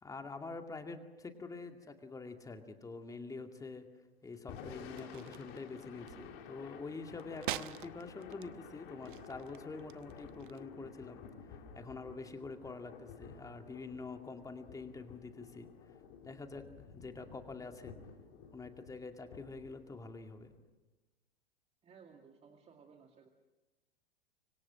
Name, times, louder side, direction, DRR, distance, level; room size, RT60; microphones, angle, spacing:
voice 1, 0.0-3.9 4.2-11.2 11.7-16.0 16.2-16.7 16.9-18.0 18.5-20.5, left 3 dB, 10° left, 5 dB, 2.3 m, -46 dB
Thunder / Rain, 4.3-20.6, left 6 dB, 40° left, 3.5 m, -53 dB
sound 1, 4.8-10.6, right 13 dB, 55° right, 1.0 m, -47 dB
voice 2, 21.8-23.3, right 6 dB, 20° right, 3 dB, 2.2 m, -59 dB
26.0 x 25.0 x 6.4 m, 1.2 s
figure-of-eight pair, 90°, 31 cm